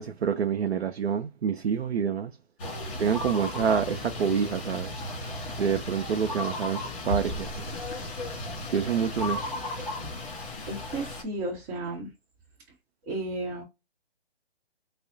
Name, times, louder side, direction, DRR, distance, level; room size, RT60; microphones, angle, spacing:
voice 1, 0.0-2.3 3.0-4.9 5.6-7.6 8.7-9.5, right 7 dB, 90° right, 0.5 m, -27 dB
sound 1, 2.6-11.2, left 1 dB, 35° left, 2.0 m, -35 dB
voice 2, 10.7-12.1 13.1-13.6, right 2 dB, 20° right, 0.9 m, -33 dB
5.4 x 2.0 x 2.6 m
hypercardioid pair, 145°, 31 cm